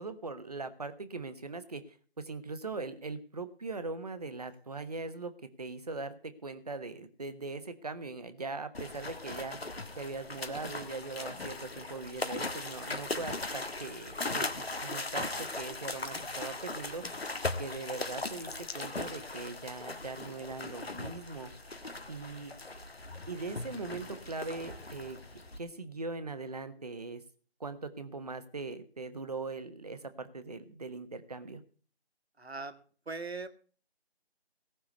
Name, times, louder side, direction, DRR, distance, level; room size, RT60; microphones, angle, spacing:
voice 1, 0.0-1.8 2.2-5.3 5.6-9.6 10.0-17.0 17.6-21.5 22.1-22.5 23.3-25.2 25.6-27.2 27.6-31.6, right 3 dB, 35° right, 11 dB, 1.2 m, -40 dB
sound 1, 8.7-25.6, left 2 dB, 65° left, 1.6 m, -39 dB
voice 2, 32.4-33.5, right 3 dB, 70° right, 10 dB, 1.7 m, -41 dB
18.0 x 6.1 x 8.2 m, 0.44 s
figure-of-eight pair, 160°, 33 cm